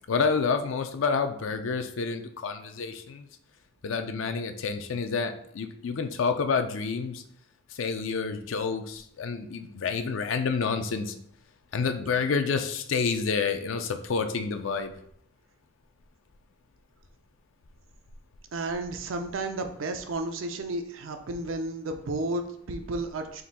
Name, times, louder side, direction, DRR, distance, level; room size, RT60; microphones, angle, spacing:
voice 1, 0.1-3.3 3.8-7.2 7.7-11.2 11.7-14.9, left 5 dB, 85° left, 8 dB, 0.5 m, -29 dB
voice 2, 18.5-23.4, right 2 dB, 90° right, 6 dB, 0.5 m, -32 dB
3.8 x 2.6 x 4.0 m, 0.69 s
head